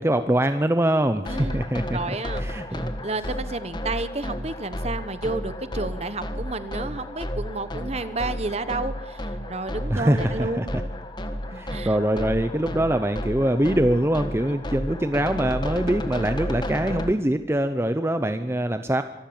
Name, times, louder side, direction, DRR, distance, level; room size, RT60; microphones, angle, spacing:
voice 1, 0.0-2.9 9.9-10.8 11.5-19.0, right 1 dB, 15° right, 9 dB, 0.7 m, -23 dB
sound 1, 1.3-17.1, equal, 25° left, 1.5 m, -32 dB
voice 2, 1.3-1.7 1.9-2.5 2.7-10.8 11.5-11.9 14.7-14.8, right 3 dB, 35° right, 13 dB, 1.1 m, -31 dB
24.5 x 13.5 x 8.8 m, 1.0 s
head